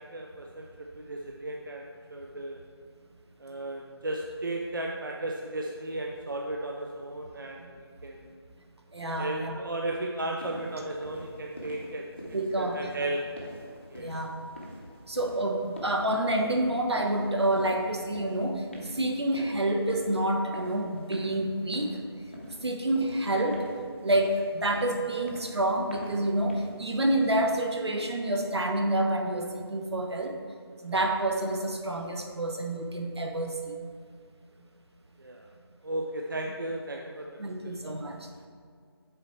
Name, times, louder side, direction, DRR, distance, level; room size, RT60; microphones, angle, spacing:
voice 1, 0.0-2.6 3.4-8.3 9.2-13.2 13.9-14.1 35.2-35.5 35.8-37.3, right 1 dB, 50° right, 1 dB, 0.5 m, -35 dB
voice 2, 8.9-9.6 12.3-12.8 14.0-14.4 15.1-22.0 22.6-23.7 24.0-30.4 30.8-33.7 37.4-38.3, right 1 dB, 75° right, 2 dB, 0.9 m, -28 dB
sound 1, 10.4-27.7, left 1 dB, 25° left, 0.7 m, -46 dB
6.8 x 4.2 x 4.3 m, 2.1 s
figure-of-eight pair, 175°, 14 cm